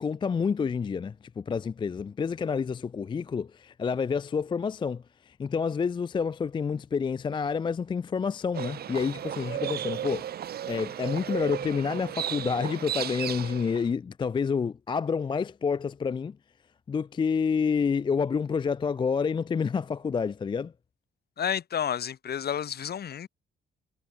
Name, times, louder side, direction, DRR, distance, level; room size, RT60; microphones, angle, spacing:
voice 1, 0.0-10.3 10.7-16.4 16.9-20.7, left 6 dB, 25° left, 0.3 m, -28 dB
Livestock farm animals working animals, 8.5-13.9, right 10 dB, 50° right, 0.6 m, -34 dB
voice 2, 21.4-23.3, left 9 dB, 55° left, 1.5 m, -30 dB
cardioid pair, 90°, 20 cm